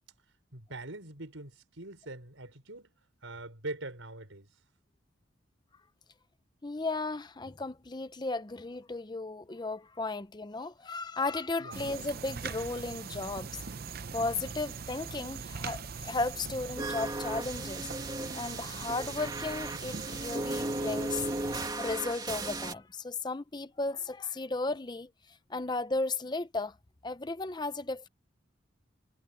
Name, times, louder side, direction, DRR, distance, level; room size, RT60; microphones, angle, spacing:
voice 1, 0.5-2.9 3.2-4.5 11.6-11.8, right 2 dB, 80° right, 5.4 m, -43 dB
voice 2, 6.6-13.5 14.1-25.1 25.5-26.8 27.0-28.1, left 3 dB, 20° left, 0.6 m, -35 dB
sound 1, 11.7-21.7, right 5 dB, 50° right, 0.7 m, -41 dB
sound 2, 16.8-22.7, right 2 dB, 20° right, 2.7 m, -36 dB
head